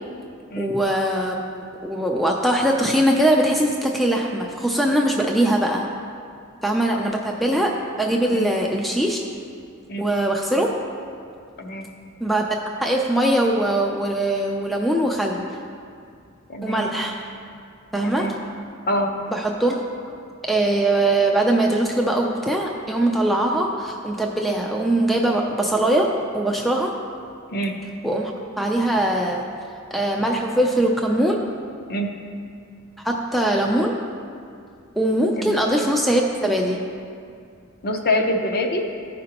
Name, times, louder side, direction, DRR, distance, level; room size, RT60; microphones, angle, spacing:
voice 1, 0.6-5.9 6.6-9.2 10.0-10.7 12.2-12.4 12.8-15.4 16.6-17.2 17.9-18.3 19.3-19.8 20.0-20.2 20.5-26.9 28.0-28.3 28.6-29.5 29.9-31.4 33.0-34.0 35.0-36.8, right 1 dB, ahead, 0 dB, 0.4 m, -21 dB
voice 2, 16.5-16.9 18.0-18.3 18.9-19.1 27.5-27.7 31.9-32.1 35.4-35.6 37.8-38.8, left 1 dB, 45° left, 3 dB, 0.7 m, -25 dB
14.0 x 5.1 x 2.9 m, 2.3 s
head